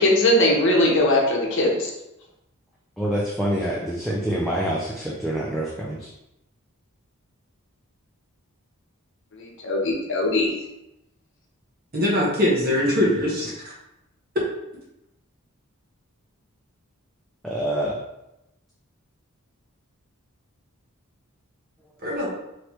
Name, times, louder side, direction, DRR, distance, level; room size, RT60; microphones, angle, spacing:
voice 1, 0.0-1.9 9.4-10.6, left 1 dB, 55° left, -2 dB, 0.9 m, -20 dB
voice 2, 3.0-6.1 17.4-18.0, right 1 dB, ahead, -6 dB, 0.5 m, -26 dB
voice 3, 11.9-13.7 22.0-22.3, left 1 dB, 45° right, -4 dB, 1.1 m, -22 dB
3.2 x 3.2 x 4.3 m, 0.89 s
head